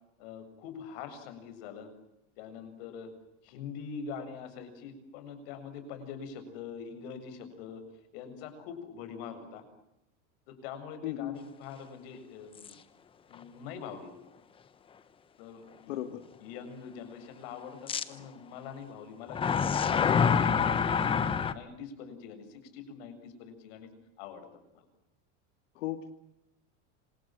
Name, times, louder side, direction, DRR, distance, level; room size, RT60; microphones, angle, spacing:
voice 1, 0.2-1.9 2.4-3.1 3.4-7.8 8.1-9.6 10.5-12.8 13.3-14.1 15.4-16.0 16.4-23.9 24.2-24.5 24.7-24.9, left 6 dB, 55° left, 9 dB, 7.5 m, -44 dB
voice 2, 11.0-11.4 15.9-16.2 25.7-26.1, left 13 dB, 80° left, 7 dB, 2.6 m, -35 dB
sound 1, 12.6-12.7 13.3-13.4 17.9-18.0 19.3-21.5, left 6 dB, 15° left, 1.1 m, -26 dB
27.5 x 27.0 x 7.7 m, 0.83 s
supercardioid pair, 175°, 36 cm